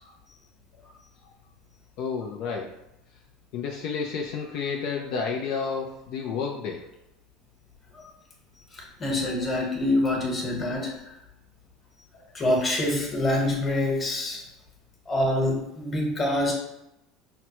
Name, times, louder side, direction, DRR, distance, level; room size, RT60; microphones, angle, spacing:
voice 1, 2.0-2.8 3.5-6.8 12.1-12.3, left 5 dB, 60° left, 1 dB, 0.4 m, -31 dB
voice 2, 8.7-11.2 12.3-14.4 15.1-16.5, left 1 dB, 25° left, -1 dB, 1.2 m, -26 dB
5.8 x 2.1 x 3.0 m, 0.86 s
supercardioid pair, 120°, 0 cm